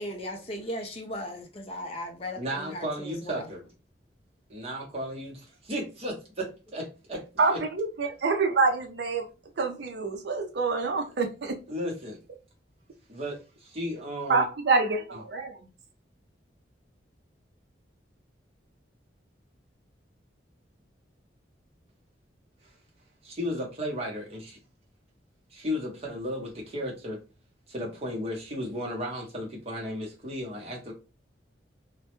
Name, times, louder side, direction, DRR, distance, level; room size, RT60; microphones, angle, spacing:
voice 1, 0.0-3.5, left 1 dB, 30° left, 0.4 m, -37 dB
voice 2, 2.4-3.7 4.5-7.2 7.5-7.6 11.7-12.2 13.1-14.5 23.2-24.6 25.5-27.2 27.7-30.9, equal, 30° right, 0.8 m, -34 dB
voice 3, 7.4-9.3 9.6-11.6 14.3-15.6, right 4 dB, 60° right, 0.4 m, -26 dB
2.2 x 2.0 x 2.9 m
head